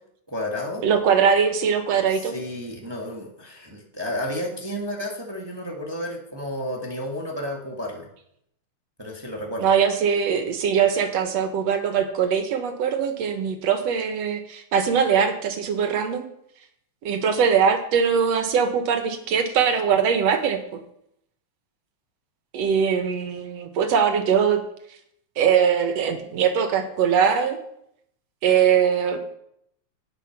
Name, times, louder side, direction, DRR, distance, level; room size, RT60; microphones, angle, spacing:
voice 1, 0.3-0.8 2.1-8.1 9.0-9.7, left 1 dB, 20° right, 0 dB, 0.7 m, -32 dB
voice 2, 0.8-2.3 9.6-16.2 17.0-20.8 22.5-24.6 25.4-27.6 28.4-29.2, right 7 dB, 65° right, 7 dB, 2.1 m, -21 dB
18.0 x 6.2 x 5.9 m, 0.74 s
omnidirectional pair, 3.5 m